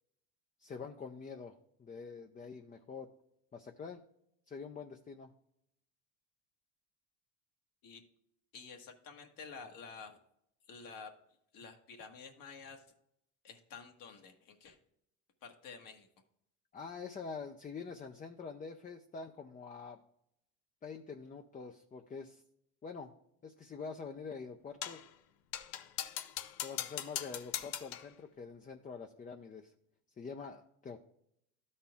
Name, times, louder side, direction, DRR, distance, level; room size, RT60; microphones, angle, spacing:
voice 1, 0.6-3.1 3.5-4.0 4.5-5.3 16.7-20.0 20.8-22.4 22.8-23.1 23.4-25.0 26.6-29.7 30.2-31.1, left 5 dB, 20° left, 5 dB, 0.5 m, -46 dB
voice 2, 8.5-10.2 10.7-11.1 11.5-12.8 13.4-14.8 15.4-16.1, left 5 dB, 60° left, 4 dB, 1.5 m, -50 dB
sound 1, 24.8-25.1 25.5-28.1, left 12 dB, 80° left, 0.7 m, -40 dB
12.5 x 4.4 x 3.5 m, 0.74 s
supercardioid pair, 105°, 38 cm